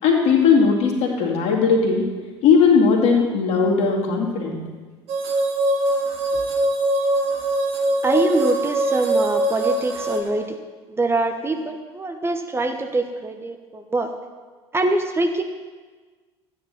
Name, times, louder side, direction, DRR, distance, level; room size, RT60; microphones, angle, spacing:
voice 1, 0.0-2.1 2.4-4.6, left 5 dB, 50° left, 0 dB, 2.2 m, -18 dB
sound 1, 5.1-10.2, right 1 dB, 50° right, 1.6 m, -22 dB
voice 2, 8.0-10.6 11.0-14.1 14.7-15.4, right 2 dB, 20° right, 5 dB, 1.0 m, -24 dB
12.5 x 9.5 x 4.3 m, 1.4 s
figure-of-eight pair, 60°, 14 cm